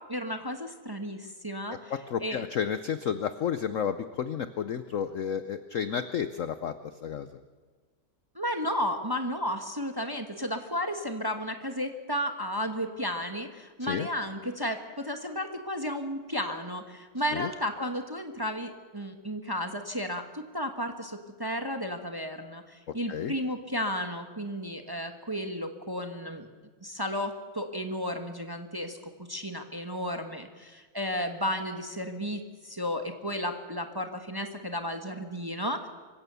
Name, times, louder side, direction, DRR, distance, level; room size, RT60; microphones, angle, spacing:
voice 1, 0.0-1.9 2.2-2.4 8.3-26.5 26.8-35.9, equal, 15° right, 6 dB, 1.0 m, -33 dB
voice 2, 1.7-7.3 13.8-14.1 17.3-17.5 23.1-23.3, left 8 dB, 70° left, 12 dB, 0.7 m, -31 dB
25.0 x 16.0 x 6.9 m, 1.4 s
omnidirectional pair, 2.2 m